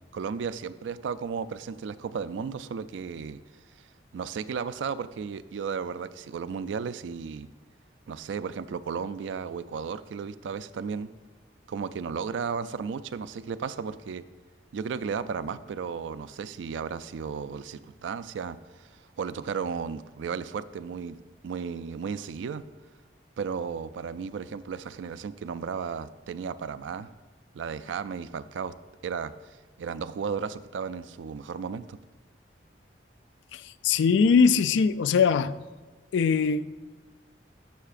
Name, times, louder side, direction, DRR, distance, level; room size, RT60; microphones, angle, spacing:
voice 1, 0.1-3.4 4.1-7.5 8.1-11.1 11.7-14.2 14.7-18.9 19.2-21.2 21.4-22.6 23.4-27.1 27.5-28.7 29.0-32.0, right 6 dB, 80° right, 0.3 m, -34 dB
voice 2, 33.5-35.6 36.1-36.7, left 5 dB, 80° left, 0.3 m, -22 dB
11.5 x 6.5 x 2.5 m
head